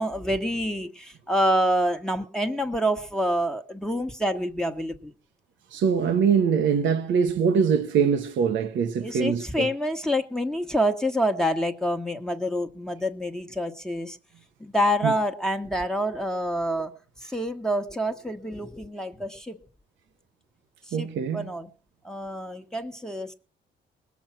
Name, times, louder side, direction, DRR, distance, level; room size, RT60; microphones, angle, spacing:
voice 1, 0.0-5.1 9.0-14.2 14.6-16.9 17.2-19.6 20.9-21.1 21.3-21.7 22.0-23.3, equal, 5° left, 1.4 m, -27 dB
voice 2, 5.7-9.7 15.0-15.1 20.9-21.5, right 6 dB, 70° right, 1.3 m, -23 dB
20.0 x 7.2 x 6.0 m
cardioid pair, 90°, 20 cm